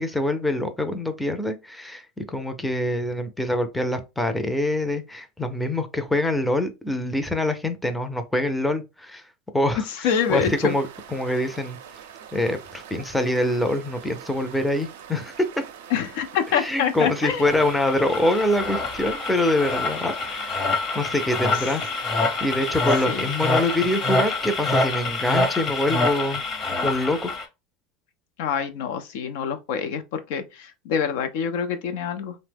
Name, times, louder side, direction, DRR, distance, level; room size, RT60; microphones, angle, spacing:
voice 1, 0.0-9.2 9.5-11.8 12.3-15.5 16.6-21.8 22.4-26.5 26.8-27.3, left 1 dB, 5° left, 0.5 m, -25 dB
voice 2, 9.9-10.7 15.9-17.5 23.1-23.2 28.4-32.4, left 7 dB, 75° left, 0.4 m, -26 dB
sound 1, 10.1-24.3, right 8 dB, 80° right, 0.4 m, -44 dB
sound 2, 17.4-27.5, left 3 dB, 40° left, 0.8 m, -26 dB
2.8 x 2.0 x 3.3 m
hypercardioid pair, 100°, 0 cm